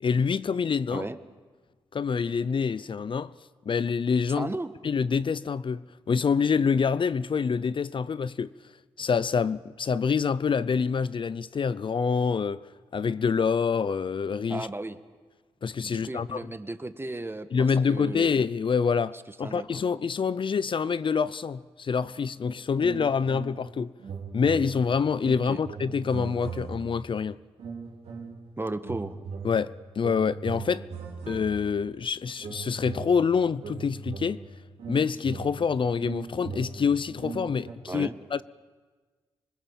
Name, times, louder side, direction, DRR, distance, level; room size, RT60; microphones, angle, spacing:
voice 1, 0.0-1.1 1.9-3.3 3.7-4.5 4.8-8.5 9.0-12.6 12.9-14.7 15.6-16.5 17.5-23.9 24.3-27.4 29.4-30.9 31.3-34.4 34.9-38.4, left 6 dB, 50° left, 0.6 m, -26 dB
voice 2, 4.3-4.7 14.5-15.0 15.8-18.3 19.4-19.8 25.4-25.6 28.6-29.2 37.9-38.1, right 2 dB, 20° right, 1.6 m, -35 dB
sound 1, 22.8-23.7 24.0-27.1 27.6-28.5 28.8-31.9 32.4-37.7, right 5 dB, 80° right, 3.5 m, -39 dB
26.5 x 20.5 x 7.4 m
cardioid pair, 55°, 11 cm